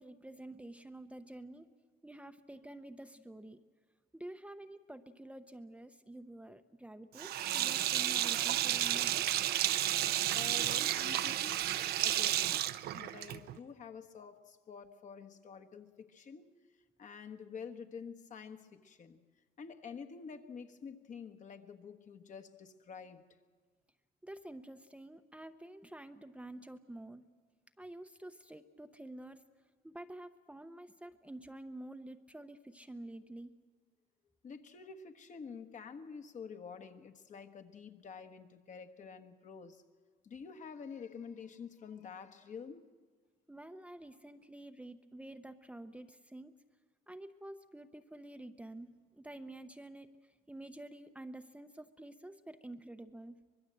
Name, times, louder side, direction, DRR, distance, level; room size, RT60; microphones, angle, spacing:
voice 1, 0.0-1.7 2.0-3.6 4.1-9.3 24.2-27.2 27.8-29.4 29.8-33.5 43.5-46.5 47.1-48.9 49.1-53.4, right 1 dB, 5° right, 8 dB, 0.8 m, -49 dB
Sink (filling or washing), 7.2-13.6, right 13 dB, 70° right, 0.7 m, -32 dB
voice 2, 10.3-16.5 17.0-19.2 19.6-23.2 34.4-39.8 40.2-42.9, left 6 dB, 45° left, 8 dB, 1.4 m, -48 dB
24.5 x 21.0 x 7.7 m, 1.5 s
cardioid pair, 110°, 17 cm